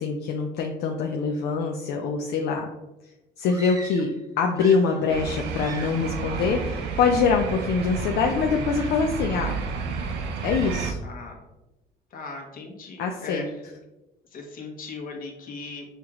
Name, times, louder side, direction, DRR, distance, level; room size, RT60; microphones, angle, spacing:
voice 1, 0.0-2.7 3.4-4.1 4.4-9.5 10.4-11.0 13.0-13.5, left 5 dB, 75° left, 2 dB, 0.5 m, -24 dB
sound 1, 3.5-4.2 4.5-5.3 5.5-6.1, right 3 dB, 20° right, 0.6 m, -41 dB
sound 2, 5.1-10.9, right 5 dB, 80° right, 0.6 m, -31 dB
voice 2, 11.0-11.4 12.1-13.4 14.3-15.9, left 4 dB, 55° left, 1 dB, 1.1 m, -38 dB
6.5 x 2.4 x 3.0 m, 1.0 s
cardioid pair, 110°, 17 cm